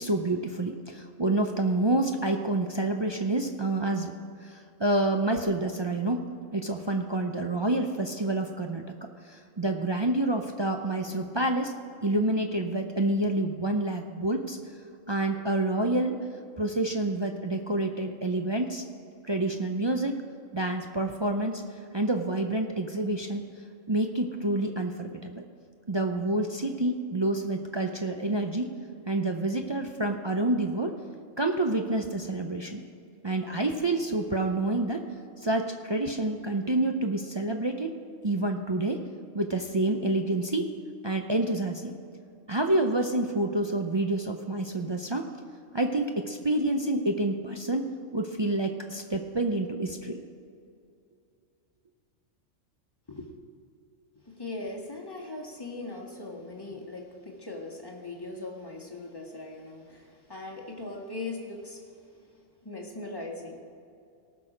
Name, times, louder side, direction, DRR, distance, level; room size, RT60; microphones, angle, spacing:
voice 1, 0.0-4.1 4.4-6.2 6.5-8.8 9.3-11.7 12.0-14.6 15.1-16.2 16.6-18.8 19.3-20.2 20.5-21.6 21.9-23.4 23.9-25.4 25.9-28.7 29.1-30.9 31.4-32.8 33.2-35.0 35.4-37.9 38.2-39.0 39.3-40.7 41.0-41.9 42.5-45.3 45.7-47.9 48.1-50.2, right 2 dB, 35° right, 3 dB, 0.4 m, -28 dB
voice 2, 54.2-61.8 62.6-63.6, left 2 dB, 20° left, 0 dB, 1.4 m, -39 dB
18.5 x 6.2 x 5.1 m, 2.5 s
omnidirectional pair, 1.3 m